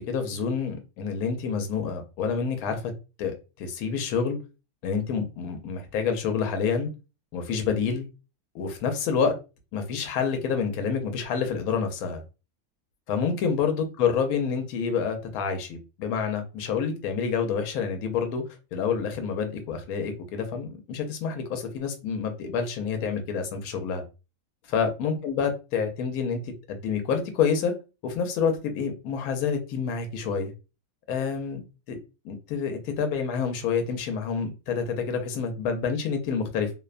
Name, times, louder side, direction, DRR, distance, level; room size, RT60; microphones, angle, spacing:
voice 1, 0.0-2.8 3.2-4.4 4.8-6.9 7.3-8.1 8.5-9.3 9.7-12.2 13.1-24.0 24.7-27.8 28.0-30.5 31.1-31.6 31.9-32.0 32.2-36.7, left 6 dB, 80° left, 6 dB, 1.1 m, -28 dB
2.8 x 2.1 x 2.4 m, 0.30 s
omnidirectional pair, 1.6 m